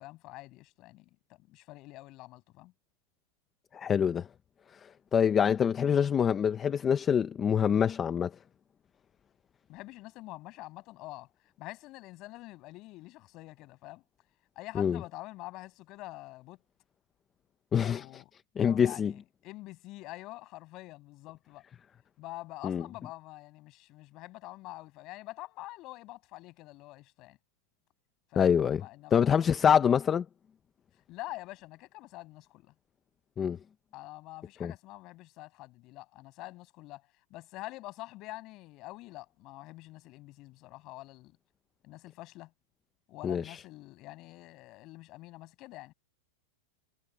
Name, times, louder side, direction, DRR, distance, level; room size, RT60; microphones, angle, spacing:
voice 1, 0.0-2.7 9.7-11.3 11.6-14.0 14.5-16.6 17.8-18.3 18.6-21.6 22.2-27.4 28.3-29.5 31.1-32.7 33.9-37.0 37.3-41.4 41.8-42.5 43.1-45.9, left 19 dB, 30° left, 6.6 m, -46 dB
voice 2, 3.7-4.3 5.1-8.3 14.7-15.0 17.7-18.0 18.6-19.1 22.6-22.8 28.4-28.8 29.1-30.2 33.4-33.6 34.6-34.7 43.2-43.6, left 8 dB, 15° left, 0.6 m, -25 dB
supercardioid pair, 170°, 0 cm